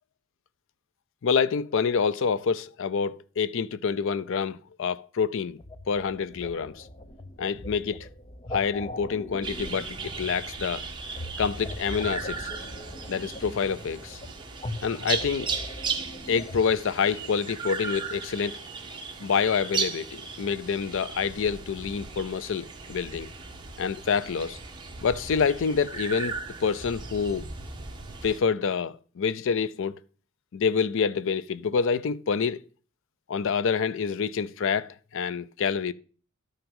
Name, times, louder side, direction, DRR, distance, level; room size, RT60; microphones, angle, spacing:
voice 1, 1.2-5.6 5.9-6.8 7.4-8.1 8.5-10.8 11.4-12.5 13.1-14.2 14.8-15.5 16.3-18.6 19.2-23.3 23.8-24.6 25.0-27.5 28.2-30.0 30.5-32.6 33.3-35.9, left 6 dB, 60° left, 0.4 m, -27 dB
sound 1, 5.6-16.6, left 1 dB, 25° left, 0.7 m, -41 dB
sound 2, 9.4-28.4, right 5 dB, 20° right, 1.3 m, -37 dB
12.0 x 5.8 x 5.4 m
head